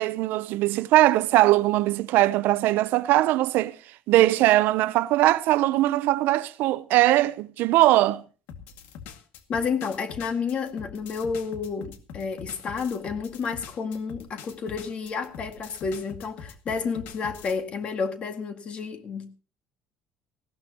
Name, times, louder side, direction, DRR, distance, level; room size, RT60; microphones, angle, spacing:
voice 1, 0.0-3.7 4.1-8.2, right 16 dB, 65° right, 0.7 m, -21 dB
sound 1, 8.5-17.6, left 7 dB, 70° left, 2.1 m, -43 dB
voice 2, 9.5-19.3, left 5 dB, 35° left, 2.0 m, -30 dB
19.0 x 16.5 x 3.0 m
cardioid pair, 175°, 4 cm